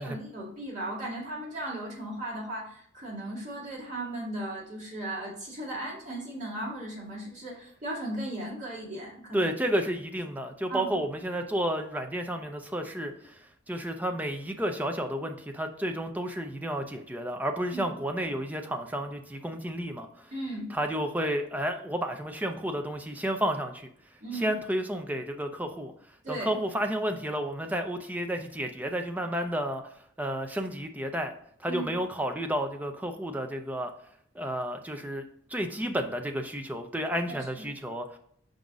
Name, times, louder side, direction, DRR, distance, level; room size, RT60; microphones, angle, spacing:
voice 1, 0.0-9.5 10.7-11.0 17.7-17.8 20.3-20.7 24.2-24.5 26.2-26.6 31.7-31.9 37.3-37.7, right 1 dB, 40° right, -4 dB, 2.2 m, -36 dB
voice 2, 9.3-20.3 20.7-23.9 24.3-25.9 26.3-29.8 30.2-31.3 31.6-33.9 34.3-35.2 35.5-38.2, equal, 10° right, 5 dB, 0.5 m, -31 dB
5.2 x 3.9 x 4.7 m, 0.65 s
head